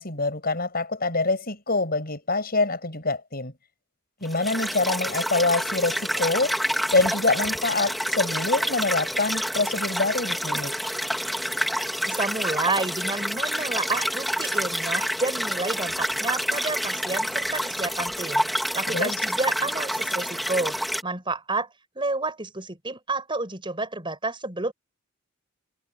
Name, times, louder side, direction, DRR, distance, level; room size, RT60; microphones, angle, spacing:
voice 1, 0.0-3.5 4.2-6.6 6.9-10.7 18.9-19.1, left 3 dB, 45° left, 7.7 m, -25 dB
sound 1, 4.2-21.0, equal, ahead, 2.1 m, -28 dB
voice 2, 12.0-18.4 18.7-20.8 21.0-21.7 22.0-24.7, right 3 dB, 25° right, 5.2 m, -30 dB
head